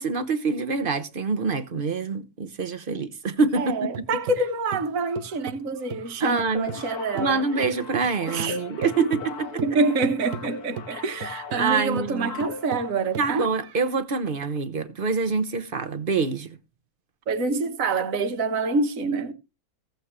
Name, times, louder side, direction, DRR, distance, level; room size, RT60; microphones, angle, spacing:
voice 1, 0.0-4.0 6.2-6.7 7.1-9.6 10.9-11.0 11.6-12.3 13.2-16.6, right 4 dB, 40° right, 1.1 m, -26 dB
voice 2, 3.5-7.4 8.3-9.1 9.6-13.5 17.3-19.3, right 3 dB, 60° right, 1.6 m, -26 dB
sound 1, 3.5-6.9 7.2-13.8, right 7 dB, 80° right, 1.4 m, -38 dB
sound 2, 6.5-12.9, left 6 dB, 85° left, 1.9 m, -39 dB
16.0 x 8.0 x 3.1 m
omnidirectional pair, 1.6 m